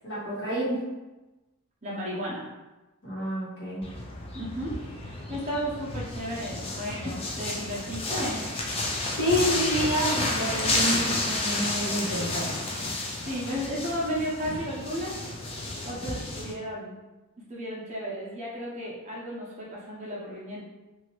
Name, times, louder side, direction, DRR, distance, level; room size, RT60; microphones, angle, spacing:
voice 1, 0.0-0.8 3.0-3.8 9.2-12.6, equal, 55° left, -7 dB, 1.1 m, -28 dB
voice 2, 1.8-2.5 4.3-8.5 13.2-15.1 15.8-16.9 17.5-20.7, equal, 30° right, -6 dB, 0.7 m, -34 dB
sound 1, 3.8-16.5, left 2 dB, 25° left, 0.3 m, -31 dB
2.8 x 2.4 x 3.0 m, 1.1 s
head